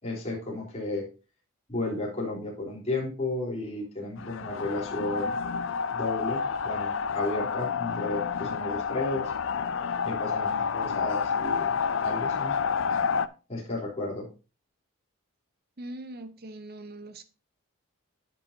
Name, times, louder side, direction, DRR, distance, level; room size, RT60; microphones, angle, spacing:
voice 1, 0.0-1.1 1.7-5.3 5.9-9.3 10.0-11.7 12.0-12.6 13.5-14.3, left 2 dB, 30° left, 3.5 m, -33 dB
sound 1, 4.2-13.3, left 6 dB, 65° left, 0.5 m, -29 dB
voice 2, 15.8-17.2, right 1 dB, 50° right, 1.0 m, -41 dB
10.5 x 8.5 x 2.7 m
head